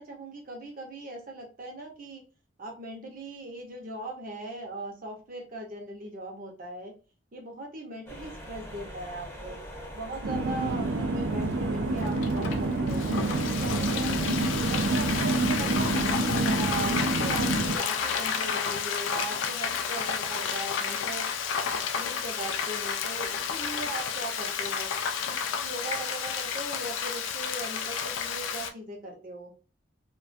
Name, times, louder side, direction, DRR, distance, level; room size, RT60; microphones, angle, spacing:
voice 1, 0.0-2.2 2.6-6.9 7.3-9.6 9.9-14.3 14.7-21.2 21.7-24.9 25.3-29.5, right 2 dB, 45° right, 1 dB, 0.7 m, -39 dB
sound 1, 8.1-16.2, equal, 10° left, 0.7 m, -43 dB
sound 2, 10.2-17.8, right 2 dB, 85° right, 0.4 m, -28 dB
Frying (food), 12.0-28.7, left 7 dB, 80° left, 0.3 m, -31 dB
2.3 x 2.2 x 2.5 m, 0.35 s
head